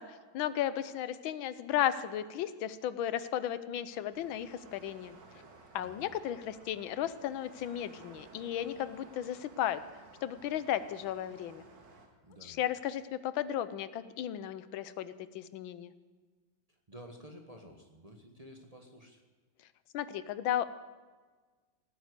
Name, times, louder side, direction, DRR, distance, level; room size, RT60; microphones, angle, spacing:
voice 1, 0.0-5.2 5.7-9.8 10.2-11.6 12.4-15.9 19.9-20.8, left 11 dB, 85° left, 14 dB, 1.5 m, -35 dB
sound 1, 4.1-12.1, right 3 dB, 65° right, 2.4 m, -56 dB
voice 2, 5.7-6.0 12.2-12.6 16.9-19.2, equal, 25° right, 3 dB, 1.1 m, -52 dB
17.5 x 9.6 x 8.2 m, 1.4 s
omnidirectional pair, 2.1 m